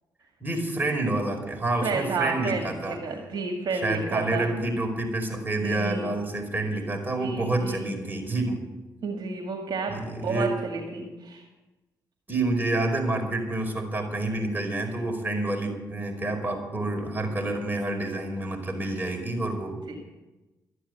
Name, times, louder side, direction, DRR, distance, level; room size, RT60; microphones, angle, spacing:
voice 1, 0.4-3.0 3.7-8.7 9.9-10.5 12.3-19.8, right 2 dB, 20° right, 2 dB, 5.0 m, -28 dB
voice 2, 1.8-4.4 5.6-6.1 7.2-7.9 9.0-10.0 10.2-11.4 19.9-20.0, right 4 dB, 55° right, 2 dB, 2.1 m, -31 dB
13.0 x 10.0 x 8.1 m, 1.1 s
hypercardioid pair, 45°, 9 cm